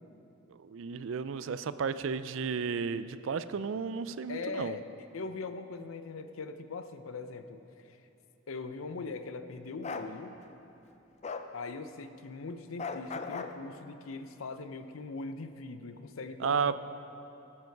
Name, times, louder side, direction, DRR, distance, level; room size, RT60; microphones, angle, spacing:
voice 1, 0.5-4.8 16.4-16.8, right 6 dB, 65° right, 14 dB, 0.4 m, -33 dB
voice 2, 4.3-4.9 5.1-8.0 8.5-10.4 11.5-16.8, left 3 dB, 90° left, 10 dB, 0.6 m, -41 dB
Bark, 9.8-10.1 11.2-11.5 12.8-13.6, left 4 dB, 35° left, 0.5 m, -37 dB
17.0 x 7.5 x 4.6 m, 2.9 s
head